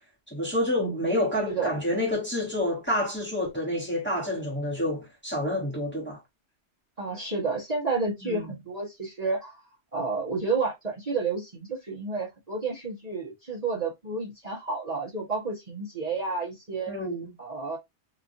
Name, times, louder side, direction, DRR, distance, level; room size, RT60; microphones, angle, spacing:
voice 1, 0.3-6.2 8.2-8.4 16.9-17.3, left 1 dB, 10° left, 1.1 m, -28 dB
voice 2, 0.8-1.1 1.5-1.8 7.0-9.6 9.9-17.0 17.4-17.8, right 4 dB, 40° right, 1.0 m, -31 dB
2.9 x 2.4 x 2.5 m
omnidirectional pair, 1.1 m